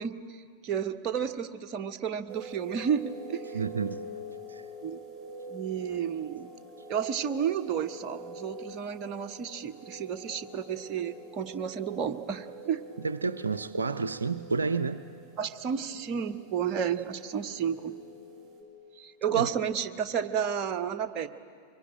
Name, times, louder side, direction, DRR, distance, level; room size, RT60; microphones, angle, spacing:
voice 1, 0.0-3.6 4.8-5.0 5.5-6.5 6.9-12.8 15.4-17.9 19.0-21.3, right 8 dB, 35° right, 7 dB, 1.2 m, -32 dB
sound 1, 2.3-18.6, equal, 15° right, 6.2 m, -46 dB
voice 2, 3.5-4.0 4.5-4.6 13.0-15.0 19.3-19.5, right 4 dB, 75° right, 11 dB, 0.6 m, -30 dB
24.5 x 22.5 x 9.1 m, 2.2 s
figure-of-eight pair, 90°, 0 cm